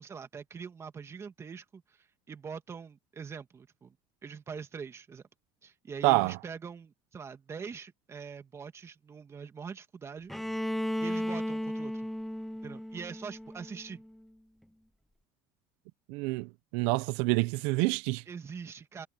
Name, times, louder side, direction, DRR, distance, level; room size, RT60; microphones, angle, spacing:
voice 1, 0.0-4.0 4.2-5.2 5.6-10.3 11.0-12.1 12.6-14.0 18.3-19.1, right 6 dB, 25° right, 2.1 m, -43 dB
voice 2, 6.0-6.3 16.1-18.2, right 23 dB, 85° right, 0.7 m, -27 dB
Bowed string instrument, 10.3-14.2, equal, ahead, 0.6 m, -35 dB
cardioid pair, 140°, 11 cm